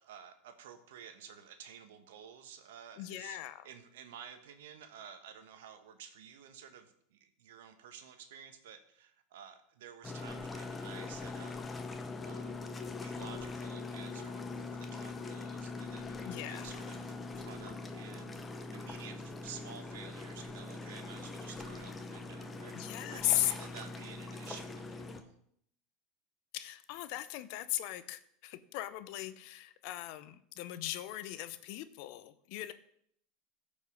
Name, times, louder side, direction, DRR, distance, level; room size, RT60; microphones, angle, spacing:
voice 1, 0.0-3.4 3.6-11.7 12.2-12.6 13.0-22.7 23.1-25.4, right 8 dB, 80° right, 8 dB, 1.3 m, -52 dB
voice 2, 3.0-3.6 16.3-16.7 22.7-23.5 26.5-32.7, left 15 dB, 65° left, 13 dB, 0.8 m, -37 dB
sound 1, 10.0-25.2, left 3 dB, 20° left, 1.2 m, -42 dB
14.5 x 5.4 x 5.4 m, 0.68 s
hypercardioid pair, 105°, 0 cm